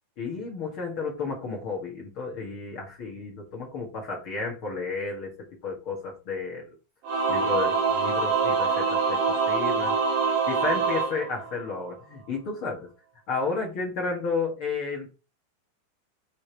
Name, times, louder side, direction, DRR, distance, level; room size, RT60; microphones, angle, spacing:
voice 1, 0.2-5.3 5.6-6.7 7.3-10.0 10.5-12.9 13.3-15.1, left 4 dB, 70° left, -2 dB, 1.2 m, -32 dB
Singing / Musical instrument, 7.0-11.9, right 5 dB, 55° right, 3.0 m, -25 dB
8.3 x 5.1 x 4.7 m, 0.31 s
omnidirectional pair, 5.7 m